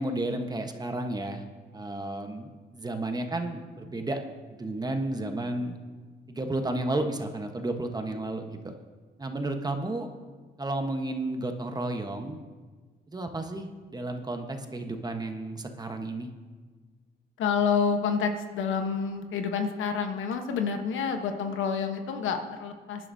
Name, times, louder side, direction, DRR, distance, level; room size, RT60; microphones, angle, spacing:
voice 1, 0.0-1.4 1.7-4.2 4.5-5.7 6.3-8.7 9.2-10.1 10.6-12.4 13.1-16.3, right 2 dB, 20° right, 5 dB, 1.2 m, -32 dB
voice 2, 17.4-23.1, left 6 dB, 80° left, 6 dB, 1.2 m, -28 dB
21.5 x 11.0 x 2.8 m, 1.4 s
cardioid pair, 90°, 20 cm